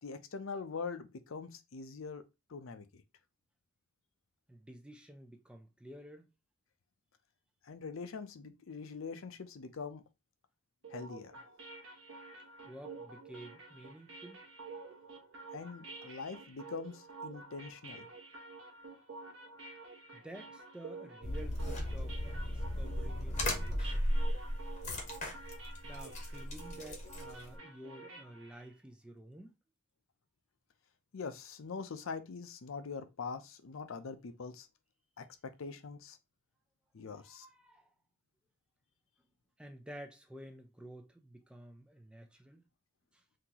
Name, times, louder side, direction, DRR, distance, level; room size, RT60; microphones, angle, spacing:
voice 1, 0.0-2.2 2.5-3.0 7.6-10.0 10.9-11.4 15.5-18.1 31.1-34.7 35.2-36.2 36.9-37.5, left 5 dB, 75° left, 0.5 m, -43 dB
voice 2, 4.5-6.3 12.6-14.4 20.1-24.1 25.8-29.5 37.1-37.9 39.6-42.6 43.1-43.2, right 1 dB, 5° right, 0.4 m, -51 dB
sound 1, 10.8-28.7, right 3 dB, 75° right, 1.0 m, -50 dB
sound 2, 21.2-27.5, left 1 dB, 35° left, 0.9 m, -36 dB
3.8 x 2.8 x 2.8 m
head